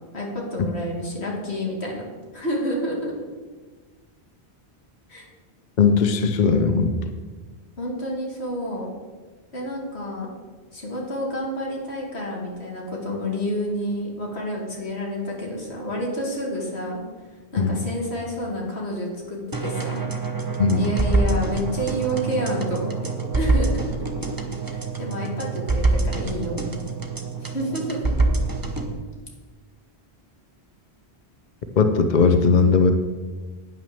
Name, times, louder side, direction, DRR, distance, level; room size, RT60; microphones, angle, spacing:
voice 1, 0.1-2.0 2.3-3.1 5.1-5.3 7.8-8.9 9.5-10.3 10.7-17.0 17.5-20.1 20.8-23.9 24.6-26.8 27.4-28.2, equal, 80° left, -2 dB, 2.6 m, -29 dB
voice 2, 5.8-6.9 17.6-17.8 20.6-20.9 31.8-32.9, left 5 dB, 50° left, 7 dB, 0.8 m, -18 dB
sound 1, 19.5-28.9, right 3 dB, 20° right, 0.9 m, -25 dB
9.3 x 6.2 x 6.9 m, 1.4 s
omnidirectional pair, 1.1 m